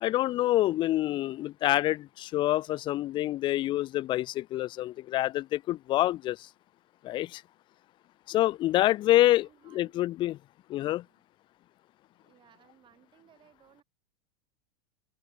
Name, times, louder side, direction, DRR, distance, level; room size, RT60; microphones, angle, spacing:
voice 1, 0.0-6.5 7.0-7.4 8.3-9.5 9.7-10.4 10.7-11.0, left 15 dB, 25° left, 0.5 m, -26 dB
voice 2, 9.0-9.9 11.0-11.2 12.2-13.8, right 10 dB, 25° right, 7.4 m, -62 dB
open air
supercardioid pair, 160°, 20 cm